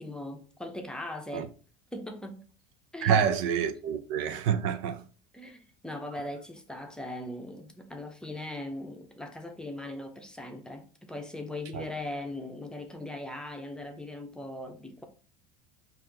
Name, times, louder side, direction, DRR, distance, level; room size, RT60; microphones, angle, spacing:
voice 1, 0.0-1.5 1.9-2.4 2.9-3.3 5.3-15.0, left 1 dB, 5° left, 0.7 m, -39 dB
voice 2, 3.0-5.0 11.7-11.9, right 8 dB, 75° right, 0.5 m, -27 dB
4.3 x 2.6 x 3.8 m
supercardioid pair, 105°, 15 cm